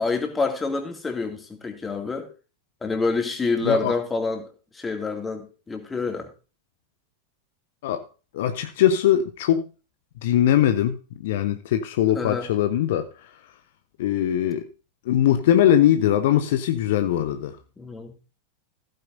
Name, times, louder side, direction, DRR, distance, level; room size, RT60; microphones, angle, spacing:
voice 1, 0.0-2.3 2.8-4.5 4.7-6.3 12.1-12.5 17.8-18.1, left 3 dB, 15° left, 2.4 m, -27 dB
voice 2, 3.6-3.9 7.8-8.1 8.3-9.6 10.2-13.3 14.0-14.7 15.1-17.6, left 11 dB, 55° left, 1.0 m, -21 dB
15.5 x 9.1 x 2.7 m
figure-of-eight pair, 90°, 0 cm